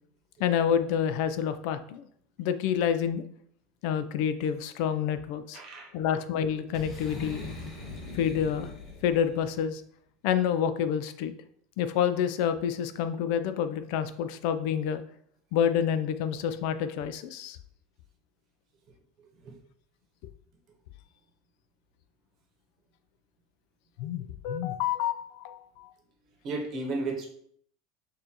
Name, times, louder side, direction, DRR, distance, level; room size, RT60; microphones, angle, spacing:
voice 1, 0.4-2.1 2.4-3.2 3.8-5.6 5.9-7.4 8.1-8.7 9.0-9.8 10.2-11.3 11.8-15.0 15.5-17.6 24.0-25.9, left 8 dB, 55° left, 11 dB, 0.3 m, -28 dB
voice 2, 5.5-5.9 19.4-19.6 26.4-27.3, right 2 dB, 35° right, 0 dB, 1.0 m, -33 dB
Boom, 6.7-9.5, left 2 dB, 30° left, 1.4 m, -40 dB
6.5 x 2.5 x 2.9 m, 0.66 s
supercardioid pair, 165°, 0 cm